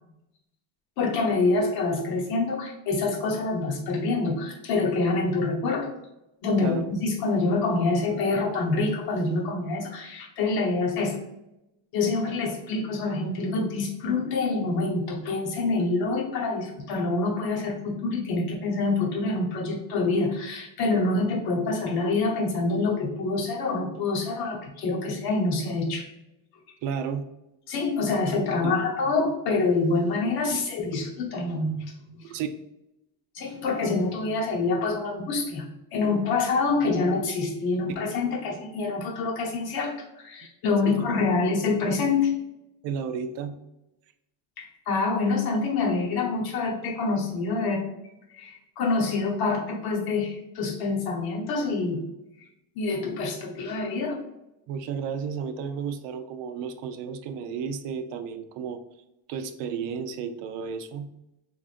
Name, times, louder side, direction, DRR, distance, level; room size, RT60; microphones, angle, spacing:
voice 1, 1.0-5.9 6.4-11.2 11.9-26.1 27.7-32.2 33.3-42.3 44.6-47.8 48.3-52.0 52.8-54.2, left 3 dB, 60° left, 0 dB, 0.9 m, -26 dB
voice 2, 26.8-27.2 28.6-28.8 30.5-30.6 30.9-31.0 32.2-32.5 40.8-41.3 42.8-43.6 54.7-58.8 59.3-61.1, right 6 dB, 80° right, 8 dB, 0.6 m, -33 dB
3.7 x 3.0 x 2.5 m, 0.90 s
cardioid pair, 170°, 43 cm